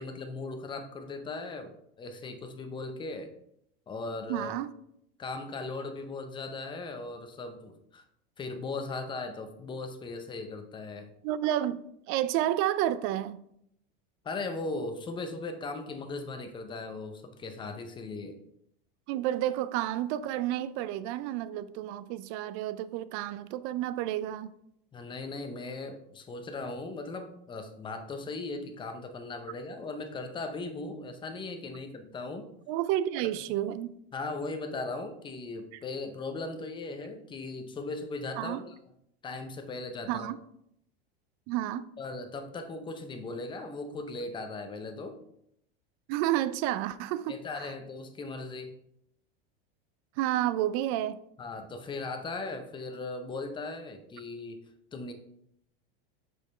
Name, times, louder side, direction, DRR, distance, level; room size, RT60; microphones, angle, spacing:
voice 1, 0.0-3.3 3.9-4.5 5.2-8.0 8.4-11.1 14.2-18.4 24.9-32.5 34.1-38.7 39.2-40.3 42.0-45.2 47.3-48.7 51.4-54.6 54.9-55.1, left 3 dB, 15° left, 0.7 m, -38 dB
voice 2, 4.3-4.7 11.2-13.4 19.1-24.5 32.7-33.9 38.4-38.6 40.1-40.4 41.5-41.9 46.1-47.7 50.2-51.2, right 13 dB, 45° right, 0.4 m, -30 dB
6.4 x 5.4 x 3.2 m
supercardioid pair, 140°, 29 cm